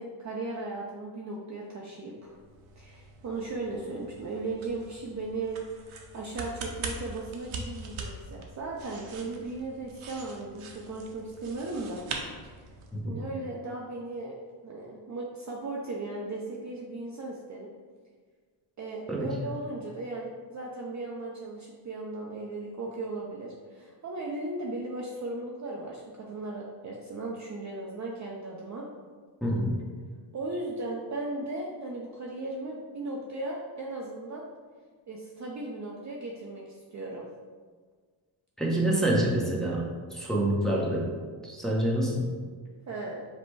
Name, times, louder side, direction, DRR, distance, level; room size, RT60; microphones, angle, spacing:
voice 1, 0.0-2.4 2.8-12.0 12.4-12.7 13.0-14.4 14.6-17.7 18.8-28.9 30.3-34.4 35.1-37.3 42.9-43.3, right 2 dB, 35° right, -2 dB, 0.5 m, -37 dB
sound 1, 2.2-13.0, right 3 dB, 75° right, 0.8 m, -42 dB
voice 2, 29.4-29.8 38.6-41.2 41.4-42.3, right 1 dB, ahead, -3 dB, 0.8 m, -27 dB
5.0 x 2.2 x 4.6 m, 1.5 s
cardioid pair, 105°, 50 cm